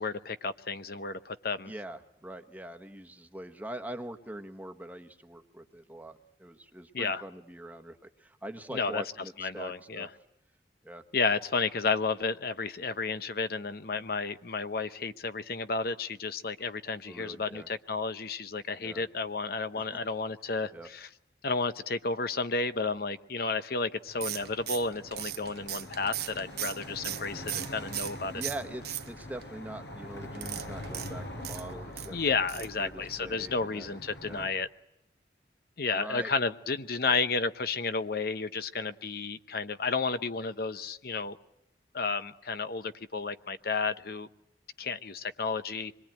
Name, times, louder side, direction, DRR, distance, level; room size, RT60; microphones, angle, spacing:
voice 1, 0.0-1.7 6.9-7.2 8.7-9.0 9.4-10.1 11.1-21.1 21.4-28.3 32.1-34.7 35.8-41.4 41.9-44.3 44.8-45.9, left 4 dB, 55° left, 11 dB, 0.9 m, -32 dB
voice 2, 1.7-10.1 10.8-11.0 17.1-17.7 18.8-19.0 19.7-20.0 20.7-20.9 28.3-33.9 34.3-34.5 35.9-36.4 37.1-37.3, right 1 dB, 10° right, 6 dB, 1.3 m, -43 dB
sound 1, 24.1-34.5, left 1 dB, 85° left, 4.8 m, -44 dB
sound 2, 24.2-28.2 28.4-29.4 30.3-32.1 32.5-32.8 33.1-33.2 33.4-33.5, right 13 dB, 60° right, 1.0 m, -37 dB
26.0 x 22.0 x 9.0 m, 0.82 s
head